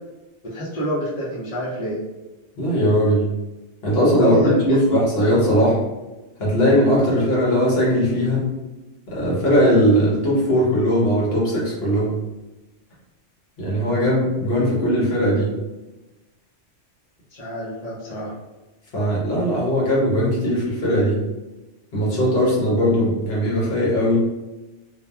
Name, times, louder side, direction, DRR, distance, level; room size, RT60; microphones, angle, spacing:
voice 1, 0.4-2.0 4.2-4.8 13.9-14.0 17.3-18.3, left 1 dB, 45° left, -7 dB, 0.7 m, -27 dB
voice 2, 2.6-3.2 3.8-5.8 6.4-8.5 9.1-12.1 13.6-15.6 18.9-21.2 21.9-24.2, equal, 60° left, -6 dB, 1.1 m, -19 dB
2.8 x 2.2 x 2.2 m, 1.1 s
omnidirectional pair, 1.2 m